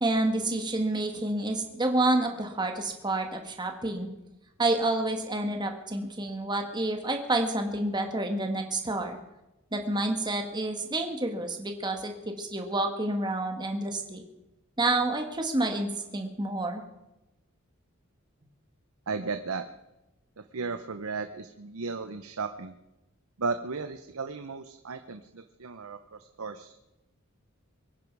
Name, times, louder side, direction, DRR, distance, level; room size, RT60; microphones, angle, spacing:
voice 1, 0.0-4.1 4.6-9.2 9.7-14.2 14.8-16.8, right 2 dB, 20° right, 4 dB, 1.7 m, -29 dB
voice 2, 19.1-19.7 20.4-22.8 23.4-26.7, right 4 dB, 90° right, 9 dB, 0.8 m, -35 dB
23.5 x 10.0 x 4.7 m, 0.96 s
head